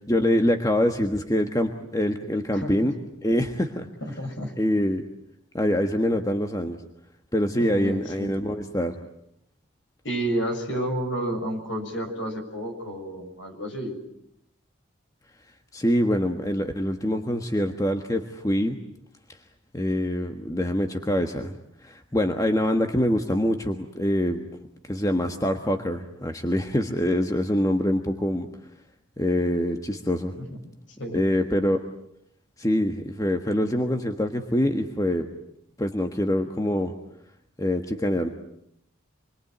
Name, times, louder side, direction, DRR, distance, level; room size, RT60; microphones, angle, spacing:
voice 1, 0.1-2.9 3.2-3.9 4.6-5.0 5.5-6.8 7.3-9.0 15.7-18.8 19.7-21.5 21.8-24.5 24.9-28.5 29.2-30.3 31.1-31.8 32.6-35.3 35.8-36.9 37.6-38.3, equal, 15° left, 5 dB, 1.4 m, -24 dB
voice 2, 2.5-2.9 4.0-4.5 7.6-8.4 10.0-14.0 30.4-30.6 31.0-31.2, right 1 dB, 60° left, 5 dB, 7.0 m, -31 dB
28.0 x 22.5 x 9.4 m, 0.77 s
head